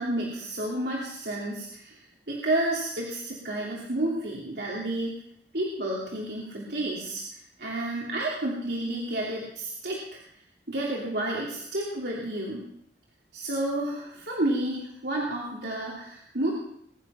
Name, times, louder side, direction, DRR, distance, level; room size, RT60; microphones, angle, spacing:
voice 1, 0.0-2.0 2.3-5.1 5.5-7.2 7.6-10.2 10.7-12.6 13.3-16.5, right 1 dB, 75° right, -3 dB, 3.1 m, -30 dB
21.5 x 11.0 x 5.8 m, 0.73 s
head